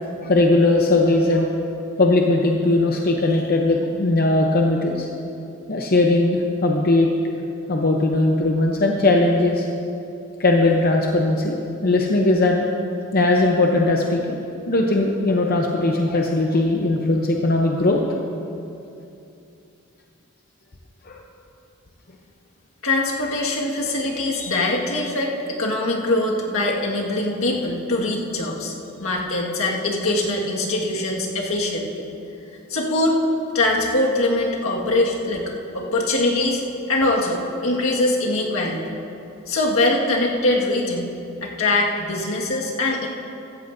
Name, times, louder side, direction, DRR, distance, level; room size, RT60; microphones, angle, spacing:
voice 1, 0.1-1.5 2.0-5.1 5.7-7.1 7.7-9.7 10.4-12.7 13.1-14.4 14.7-18.1 21.1-21.2, left 2 dB, 45° left, 1 dB, 0.7 m, -19 dB
voice 2, 22.8-28.7 29.0-31.9 32.7-33.2 33.5-36.6 36.9-38.9 39.5-41.1 41.4-43.1, left 2 dB, 75° left, -2 dB, 1.8 m, -22 dB
16.0 x 14.0 x 2.7 m, 2.7 s
head